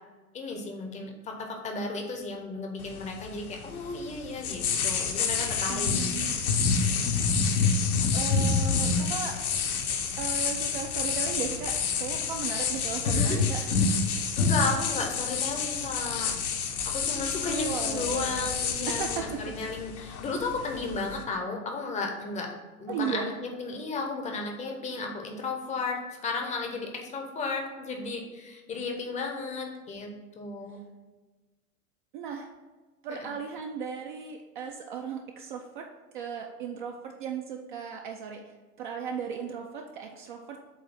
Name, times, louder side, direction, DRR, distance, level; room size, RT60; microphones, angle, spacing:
voice 1, 0.3-6.1 13.0-13.4 14.4-16.3 16.9-22.5 22.8-30.8 33.2-33.3, left 3 dB, 15° left, 2 dB, 0.7 m, -34 dB
sound 1, 2.8-21.2, left 5 dB, 65° left, 0.9 m, -28 dB
voice 2, 5.7-6.4 7.6-7.9 8.1-9.4 10.2-13.9 17.5-18.5 18.9-19.5 22.9-23.3 32.1-32.5 33.0-35.9 36.1-38.4 38.8-40.6, right 7 dB, 35° right, 3 dB, 0.4 m, -36 dB
7.8 x 2.6 x 5.6 m, 1.3 s
figure-of-eight pair, 95°, 47 cm